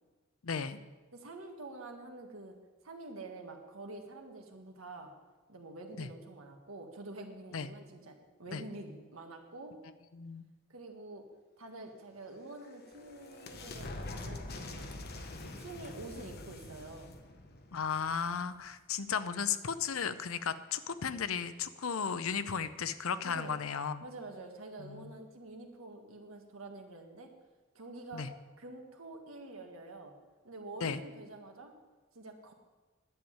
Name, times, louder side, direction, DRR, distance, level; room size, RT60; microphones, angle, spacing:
voice 1, 0.4-0.8 6.0-6.1 7.5-7.7 8.5-8.6 10.1-10.4 17.7-24.0 24.8-25.1 28.1-28.3 30.8-31.0, left 6 dB, 75° left, 13 dB, 0.6 m, -35 dB
voice 2, 1.1-2.6 2.8-5.1 5.5-9.8 10.7-11.3 11.6-15.1 15.4-17.1 23.2-23.6 24.0-27.3 27.7-28.3 28.6-30.1 30.4-31.7 32.1-32.5, right 2 dB, 70° right, 3 dB, 1.7 m, -47 dB
sound 1, 12.3-18.8, left 2 dB, 50° left, 1.1 m, -45 dB
11.0 x 7.2 x 8.7 m, 1.2 s
head